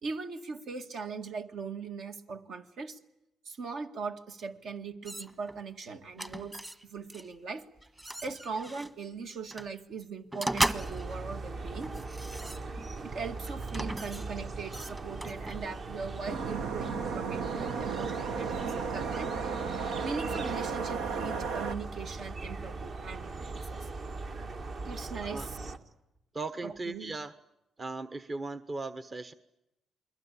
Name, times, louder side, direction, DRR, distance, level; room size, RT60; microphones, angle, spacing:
voice 1, 0.0-3.0 3.5-6.6 6.8-7.7 8.2-12.0 13.0-19.4 20.0-23.9 24.8-25.7 26.6-27.2, right 5 dB, 65° right, 6 dB, 1.9 m, -40 dB
sound 1, 5.1-5.6 6.2-6.8 7.1-7.3 7.8-8.9 9.5-9.7 10.3-11.2 11.8-13.0 13.6-15.7, right 1 dB, 15° right, 1.4 m, -36 dB
sound 2, 10.7-25.8, right 3 dB, 50° right, 1.8 m, -40 dB
sound 3, 16.3-21.8, right 5 dB, 90° right, 1.5 m, -34 dB
voice 2, 26.3-27.3 27.8-29.3, right 3 dB, 30° right, 12 dB, 1.0 m, -38 dB
28.5 x 21.5 x 8.5 m, 0.91 s
cardioid pair, 90°, 0 cm